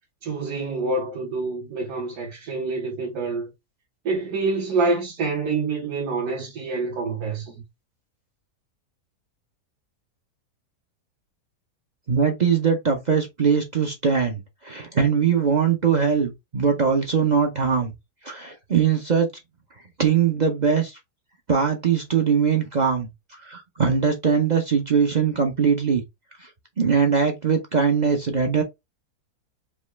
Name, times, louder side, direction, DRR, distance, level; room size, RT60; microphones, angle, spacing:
voice 1, 0.2-3.5 4.1-7.6, right 3 dB, 75° right, 1.8 m, -26 dB
voice 2, 12.1-17.9 18.2-19.3 20.0-21.0 21.5-23.1 23.4-26.0 26.4-26.5 26.8-28.6, right 6 dB, 45° right, 0.5 m, -21 dB
5.2 x 2.4 x 3.1 m
omnidirectional pair, 1.7 m